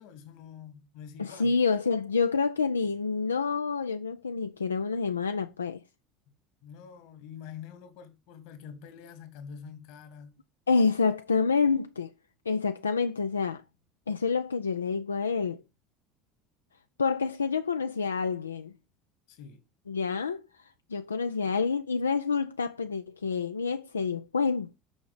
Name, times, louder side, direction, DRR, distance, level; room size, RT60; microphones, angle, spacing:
voice 1, 0.0-1.5 6.6-10.4 19.3-19.6, left 7 dB, 60° left, 1.7 m, -46 dB
voice 2, 1.2-5.8 10.7-12.1 12.5-13.6 14.1-15.6 17.0-18.7 19.9-24.8, left 5 dB, 85° left, 0.3 m, -28 dB
6.3 x 5.9 x 4.9 m
hypercardioid pair, 70°, 0 cm